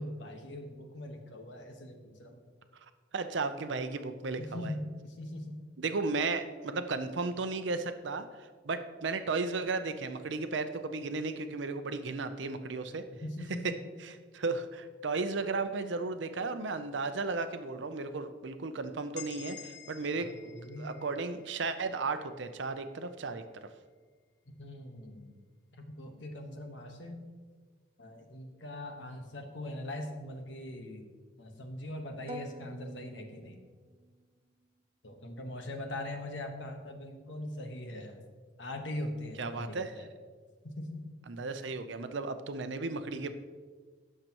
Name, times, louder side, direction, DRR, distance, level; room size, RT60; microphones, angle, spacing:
voice 1, 0.0-2.4 4.4-5.6 13.2-13.7 20.2-20.9 24.6-25.3 25.8-27.2 28.0-31.0 31.4-33.6 35.0-38.2 38.6-40.1 40.8-41.0, left 1 dB, 80° left, 4 dB, 1.3 m, -41 dB
voice 2, 3.1-4.7 5.8-13.0 13.6-13.7 14.0-20.3 20.8-23.4 39.4-40.1 41.3-43.3, right 3 dB, 80° right, 9 dB, 0.6 m, -34 dB
sound 1, 19.2-23.0, left 11 dB, 65° left, 0.5 m, -51 dB
sound 2, 32.3-34.2, right 1 dB, 30° right, 0.4 m, -47 dB
16.5 x 6.6 x 3.0 m, 1.5 s
head